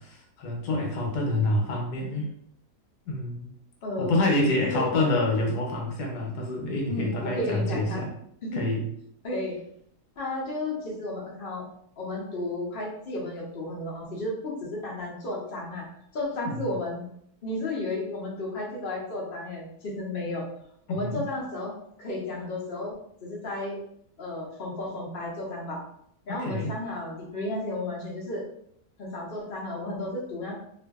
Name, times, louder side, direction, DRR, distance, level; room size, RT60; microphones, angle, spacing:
voice 1, 0.0-2.3 3.1-3.5 4.0-8.1 8.5-8.8 16.4-16.6 20.9-21.2 26.3-26.7, left 2 dB, 85° left, -1 dB, 1.3 m, -27 dB
voice 2, 3.8-5.1 6.9-8.0 8.4-8.6 9.2-9.6 10.2-11.6 12.0-15.9 16.1-17.1 17.4-20.4 20.9-21.7 22.0-22.9 23.2-23.8 24.2-25.8 26.3-28.4 29.0-30.5, left 1 dB, 50° left, -4 dB, 0.7 m, -33 dB
2.6 x 2.5 x 2.3 m, 0.70 s
omnidirectional pair, 1.7 m